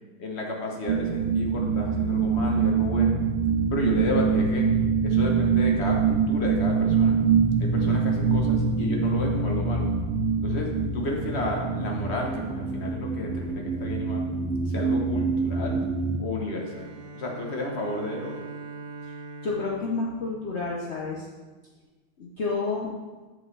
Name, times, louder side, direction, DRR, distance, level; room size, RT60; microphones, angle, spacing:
voice 1, 0.2-3.2 3.7-4.7 5.0-7.2 7.6-9.9 10.4-14.3 14.7-15.9 16.2-18.5, left 2 dB, 45° left, 0 dB, 0.9 m, -32 dB
sound 1, 0.9-16.2, right 5 dB, 85° right, 1.5 m, -24 dB
Bowed string instrument, 16.3-21.1, right 4 dB, 70° right, 1.6 m, -42 dB
voice 2, 19.4-21.3 22.2-22.9, left 3 dB, 85° left, -3 dB, 0.6 m, -30 dB
7.7 x 7.4 x 3.2 m, 1.3 s
omnidirectional pair, 2.3 m